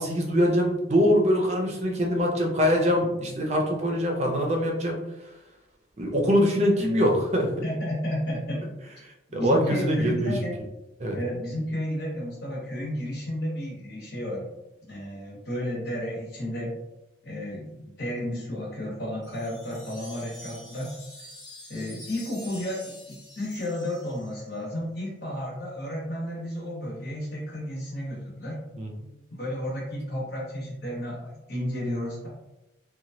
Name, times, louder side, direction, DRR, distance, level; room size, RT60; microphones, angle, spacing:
voice 1, 0.0-5.0 6.0-7.5 9.3-10.3 11.0-11.2 28.8-29.1, equal, 35° right, 1 dB, 0.5 m, -23 dB
voice 2, 7.6-8.7 9.3-10.5 11.1-14.5 14.8-16.7 17.2-20.9 21.7-28.6 29.3-32.3, left 1 dB, 60° left, -3 dB, 1.1 m, -32 dB
Wind chime, 19.2-24.6, left 1 dB, 20° left, 0.8 m, -46 dB
3.0 x 2.2 x 2.7 m, 0.95 s
head